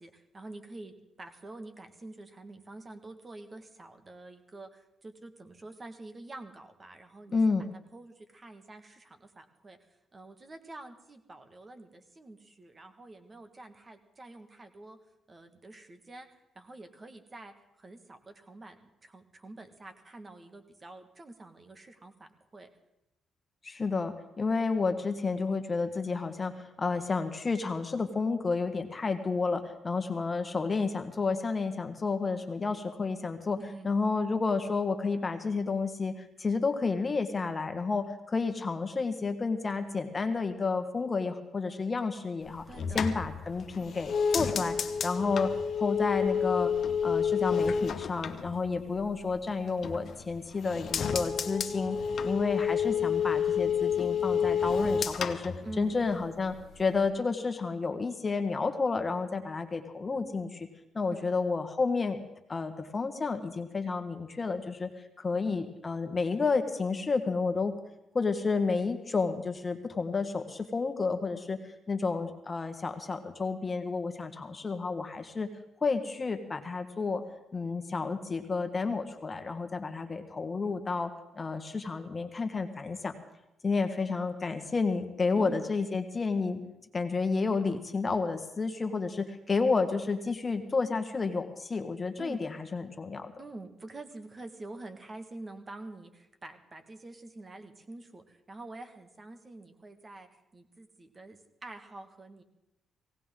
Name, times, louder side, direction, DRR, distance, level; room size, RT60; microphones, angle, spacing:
voice 1, 0.0-7.7 7.9-9.8 10.1-15.0 15.3-16.3 16.6-22.7 33.6-33.9 42.7-43.1 55.6-56.0 61.1-61.4 85.4-85.6 92.2-92.5 93.4-102.4, right 2 dB, 30° right, 7 dB, 1.7 m, -47 dB
voice 2, 7.3-7.6 23.6-33.6 33.8-42.6 42.9-44.8 45.0-46.7 47.0-52.0 52.2-60.7 60.9-62.2 62.5-64.9 65.2-67.7 68.1-71.6 71.9-75.5 75.8-77.2 77.5-83.2 83.6-86.6 86.9-93.3, left 4 dB, 30° left, 8 dB, 1.5 m, -31 dB
sound 1, 42.5-49.2 49.6-50.3 50.6-56.3 56.6-57.1, left 7 dB, 55° left, 1.0 m, -30 dB
18.5 x 17.5 x 3.8 m, 0.89 s
cardioid pair, 90°, 0 cm